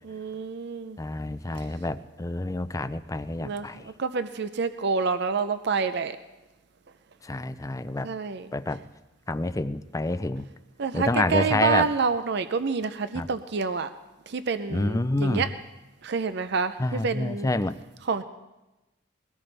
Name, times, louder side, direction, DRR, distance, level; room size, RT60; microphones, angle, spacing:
voice 1, 0.1-1.0 3.4-6.2 8.0-8.5 10.8-13.9 14.3-15.5 16.0-17.5 18.1-18.2, right 5 dB, 60° right, 11 dB, 0.6 m, -28 dB
voice 2, 1.0-3.9 7.2-8.1 8.5-8.8 9.3-10.5 10.9-11.9 13.1-13.3 14.7-15.5 16.8-17.7, left 2 dB, 15° left, 12 dB, 0.5 m, -28 dB
21.5 x 17.5 x 3.4 m, 1.0 s
head